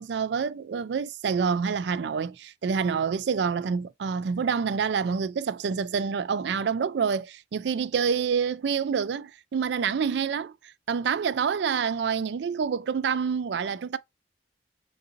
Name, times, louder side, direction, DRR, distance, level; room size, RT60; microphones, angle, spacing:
voice 1, 0.0-10.5 10.9-14.0, right 6 dB, 75° right, 0.4 m, -27 dB
3.9 x 2.5 x 2.6 m
head